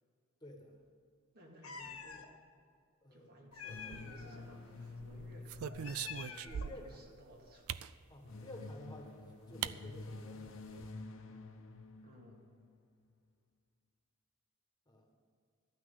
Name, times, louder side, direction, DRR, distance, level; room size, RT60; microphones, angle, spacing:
voice 1, 0.4-0.8 3.0-3.5 6.3-7.0 8.1-10.5 14.9-15.1, left 1 dB, 20° left, 1 dB, 1.5 m, -52 dB
voice 2, 1.3-2.3 3.1-7.7 12.0-12.5, equal, 45° right, 0 dB, 2.0 m, -58 dB
Meow, 1.6-2.3 3.5-4.4 5.6-6.8, left 6 dB, 85° left, 1.4 m, -48 dB
sound 1, 3.7-7.1 7.9-12.7, left 3 dB, 65° left, 0.9 m, -50 dB
sound 2, 3.8-4.5 5.0-7.0 7.7-7.9 9.0-9.1 9.6-9.8 10.1-10.2 10.5-10.9, right 9 dB, 85° right, 0.4 m, -42 dB
14.0 x 6.1 x 9.7 m, 2.2 s
head